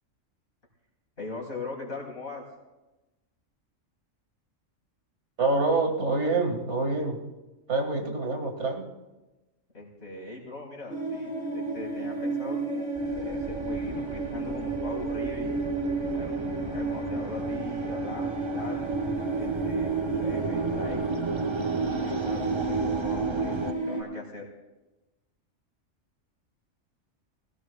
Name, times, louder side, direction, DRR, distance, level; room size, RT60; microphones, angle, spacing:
voice 1, 1.2-2.4 9.7-15.5 16.1-16.4 16.7-18.8 19.4-21.1 21.6-23.6 23.9-24.5, left 3 dB, 55° left, -3 dB, 4.4 m, -40 dB
voice 2, 5.4-7.2 7.7-8.9, right 3 dB, 60° right, 3 dB, 2.2 m, -26 dB
sound 1, 10.9-24.0, right 3 dB, 5° right, 3.9 m, -31 dB
sound 2, 13.0-23.7, right 4 dB, 30° right, 0.5 m, -34 dB
21.5 x 16.5 x 2.3 m, 1.1 s
omnidirectional pair, 1.3 m